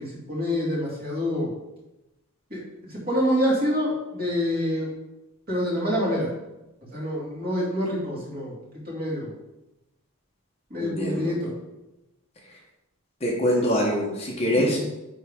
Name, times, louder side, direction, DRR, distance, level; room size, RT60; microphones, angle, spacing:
voice 1, 0.0-1.5 2.5-2.6 2.9-4.9 5.5-6.3 6.9-8.5 8.9-9.3 10.7-11.5 14.5-14.7, equal, 45° right, -5 dB, 2.4 m, -26 dB
voice 2, 10.8-11.3 13.2-14.8, equal, 30° left, -2 dB, 1.2 m, -24 dB
9.2 x 3.6 x 3.6 m, 0.96 s
head